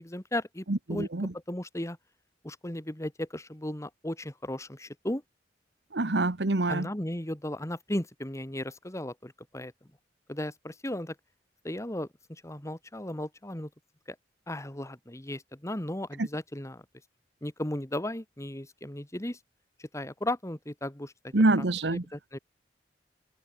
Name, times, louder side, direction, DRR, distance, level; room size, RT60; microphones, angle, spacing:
voice 1, 0.0-1.1 1.5-2.0 2.4-5.2 6.7-9.7 10.3-11.2 11.6-13.7 14.1-14.2 14.5-16.8 17.4-19.4 19.8-21.7 21.9-22.4, left 1 dB, 15° left, 2.0 m, -36 dB
voice 2, 0.7-1.3 5.9-6.9 16.2-16.3 21.3-22.0, right 2 dB, 75° right, 1.3 m, -26 dB
head